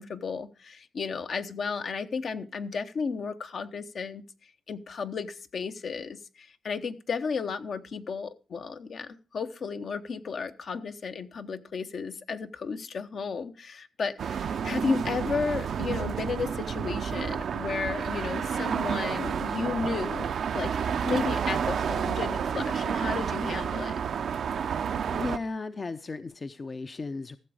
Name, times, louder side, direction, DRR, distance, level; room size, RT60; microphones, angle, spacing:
voice 1, 0.0-4.2 4.7-20.3 20.5-23.9, left 5 dB, 65° left, 0.9 m, -33 dB
sound 1, 14.2-25.4, right 7 dB, 75° right, 0.6 m, -30 dB
voice 2, 25.1-27.4, left 3 dB, 40° left, 0.6 m, -35 dB
14.0 x 6.9 x 4.9 m
cardioid pair, 75°, 0 cm